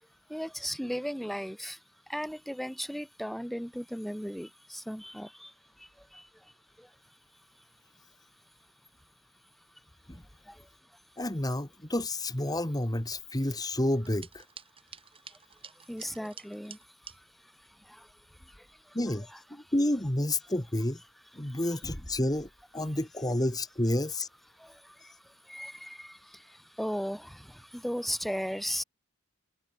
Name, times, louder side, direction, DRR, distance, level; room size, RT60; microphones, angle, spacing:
voice 1, 0.3-7.0 10.4-10.7 15.3-15.4 15.7-19.0 19.3-19.7 21.4-21.8 24.5-28.8, equal, ahead, 1.9 m, -38 dB
voice 2, 11.2-14.4 18.9-21.0 21.3-24.3, left 1 dB, 15° left, 1.8 m, -30 dB
sound 1, 13.9-17.2, right 7 dB, 25° right, 3.0 m, -49 dB
head